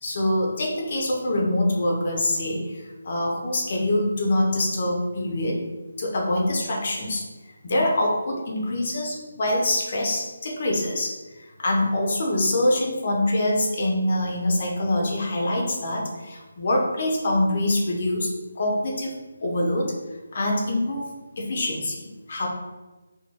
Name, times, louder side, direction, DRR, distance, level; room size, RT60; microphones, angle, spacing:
voice 1, 0.0-5.6 6.0-7.3 7.6-19.9 20.3-21.0 21.4-22.0 22.3-22.5, left 1 dB, 40° left, -1 dB, 0.9 m, -25 dB
6.1 x 3.0 x 2.3 m, 1.2 s
figure-of-eight pair, 150°, 0 cm